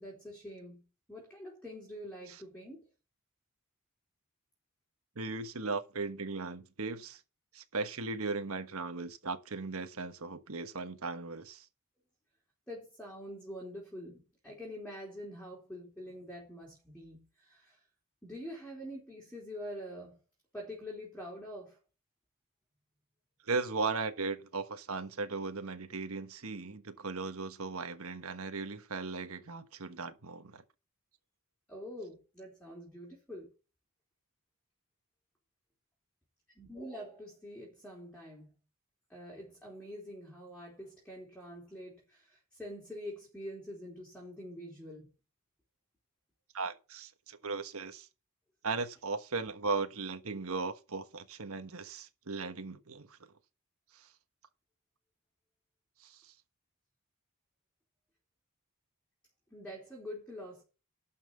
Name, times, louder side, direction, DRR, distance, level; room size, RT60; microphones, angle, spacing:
voice 1, 0.0-2.9 12.7-17.9 18.2-20.2 20.5-21.8 31.7-33.5 36.5-38.5 39.1-45.1 59.5-60.6, equal, 5° left, 4.1 m, -45 dB
voice 2, 5.1-7.2 7.5-11.7 23.4-30.6 46.5-48.1 48.6-53.2 53.9-54.1 56.0-56.3, right 4 dB, 70° right, 1.3 m, -37 dB
12.0 x 5.7 x 6.9 m
head